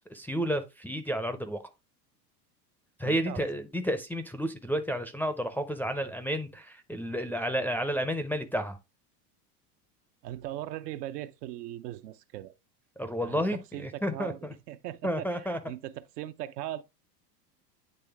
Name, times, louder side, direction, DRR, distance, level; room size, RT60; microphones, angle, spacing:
voice 1, 0.1-1.6 3.0-8.8 13.0-14.5 15.0-15.6, equal, 5° left, 0.5 m, -31 dB
voice 2, 3.0-3.4 10.2-12.5 13.2-16.8, right 13 dB, 75° right, 0.7 m, -39 dB
9.1 x 3.2 x 3.4 m
hypercardioid pair, 100°, 48 cm